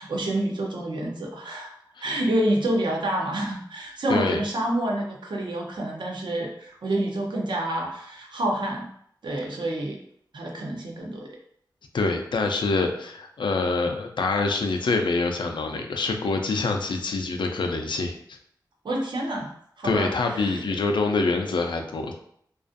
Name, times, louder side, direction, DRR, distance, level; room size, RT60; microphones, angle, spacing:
voice 1, 0.0-1.7 2.0-8.9 9.2-10.0 10.3-11.3 18.8-19.5 19.8-20.6, right 1 dB, 80° right, 0 dB, 0.6 m, -28 dB
voice 2, 4.1-4.4 11.9-18.2 19.8-22.1, left 3 dB, 85° left, 4 dB, 0.3 m, -25 dB
2.4 x 2.3 x 2.5 m, 0.67 s
wide cardioid pair, 90°, 8 cm